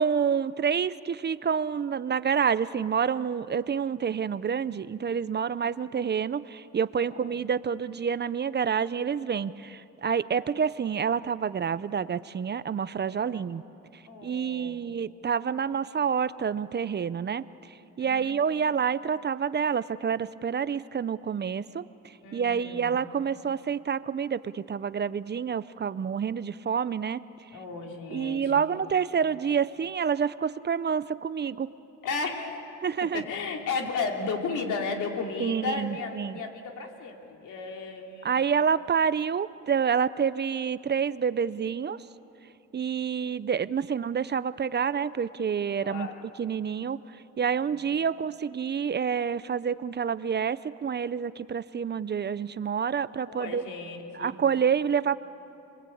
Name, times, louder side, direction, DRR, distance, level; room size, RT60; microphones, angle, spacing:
voice 1, 0.0-13.6 13.9-17.4 18.0-27.2 28.1-31.7 32.8-33.2 35.4-36.4 38.2-42.0 42.7-46.1 46.4-47.0 47.4-53.6 54.2-55.2, right 7 dB, 35° right, 16 dB, 0.6 m, -28 dB
voice 2, 6.9-7.4 13.1-13.5 14.1-15.0 18.0-18.3 22.2-23.0 27.5-28.8 32.0-32.6 33.0-38.5 45.8-46.3 47.5-47.8 53.3-54.4, left 4 dB, 85° left, 2 dB, 3.2 m, -35 dB
29.5 x 21.5 x 8.6 m, 2.8 s
cardioid pair, 90°, 30 cm